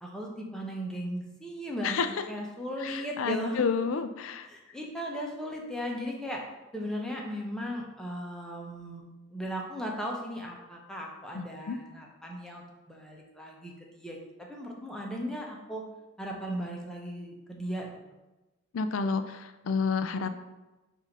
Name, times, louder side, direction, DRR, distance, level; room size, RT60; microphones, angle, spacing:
voice 1, 0.0-3.7 4.5-6.4 6.7-9.0 9.3-14.2 14.5-15.8 16.2-17.9, equal, 5° left, -1 dB, 0.8 m, -37 dB
voice 2, 1.8-2.2 2.8-4.5 11.3-11.8 18.7-20.3, left 5 dB, 75° left, 9 dB, 0.4 m, -30 dB
7.2 x 2.7 x 5.3 m, 1.1 s
head